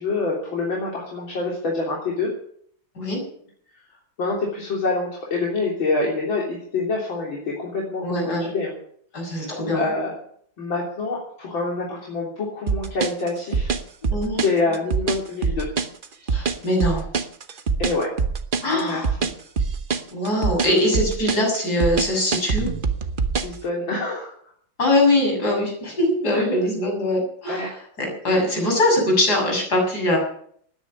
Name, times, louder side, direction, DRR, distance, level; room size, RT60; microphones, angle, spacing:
voice 1, 0.0-2.3 4.2-8.7 9.2-10.1 10.6-13.7 14.4-15.7 17.8-18.1 18.7-19.3 23.4-24.3 26.3-26.5 27.5-27.7, left 3 dB, 65° left, -3 dB, 4.2 m, -26 dB
voice 2, 8.0-8.5 9.1-9.8 14.1-14.4 16.3-17.1 18.6-19.1 20.1-22.7 24.8-27.7 28.0-30.2, left 1 dB, 45° left, 0 dB, 7.6 m, -22 dB
sound 1, 12.7-23.6, right 5 dB, 45° right, 0.7 m, -24 dB
13.5 x 10.0 x 9.7 m, 0.63 s
omnidirectional pair, 2.3 m